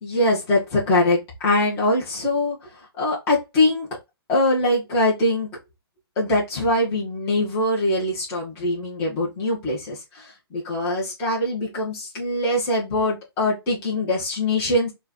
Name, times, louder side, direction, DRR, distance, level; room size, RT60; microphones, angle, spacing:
voice 1, 0.0-2.6 3.0-3.9 4.3-5.5 6.2-14.9, left 1 dB, 20° left, 1.8 m, -22 dB
4.5 x 2.8 x 3.0 m
hypercardioid pair, 160°, 13 cm